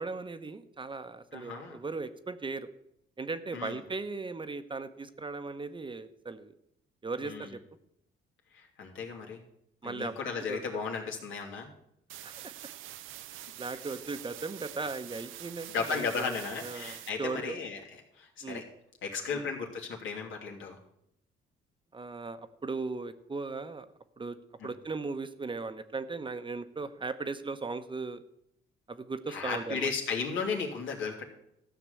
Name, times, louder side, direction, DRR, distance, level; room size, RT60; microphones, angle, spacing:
voice 1, 0.0-2.7 3.2-6.5 7.0-7.6 9.8-10.1 10.5-10.6 12.2-12.4 13.3-16.3 16.6-17.6 18.4-18.6 19.3-19.4 21.9-23.9 24.2-24.4 24.6-28.2 28.9-29.9, right 3 dB, 25° right, 10 dB, 0.9 m, -37 dB
voice 2, 1.3-1.8 3.5-3.8 7.2-7.6 8.5-9.4 9.8-11.7 15.7-18.6 19.0-20.8 24.6-24.7 29.3-31.2, left 5 dB, 80° left, 0 dB, 2.8 m, -35 dB
sound 1, 12.1-17.1, right 14 dB, 85° right, 0.6 m, -45 dB
13.5 x 6.0 x 8.3 m, 0.77 s
cardioid pair, 90°, 20 cm